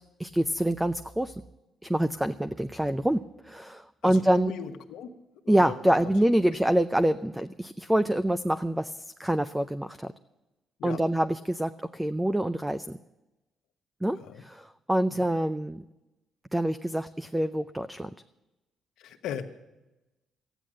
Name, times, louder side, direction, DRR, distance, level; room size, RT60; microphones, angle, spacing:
voice 1, 0.2-1.4 1.8-4.5 5.5-10.1 10.8-13.0 14.0-15.8 16.5-18.1, right 1 dB, 10° right, 11 dB, 0.4 m, -26 dB
voice 2, 4.0-5.1 5.4-6.1 10.8-11.0 14.1-14.4 15.1-15.3 19.0-19.6, left 8 dB, 85° left, 6 dB, 1.2 m, -38 dB
13.5 x 10.0 x 7.5 m, 1.0 s
cardioid pair, 90°, 0 cm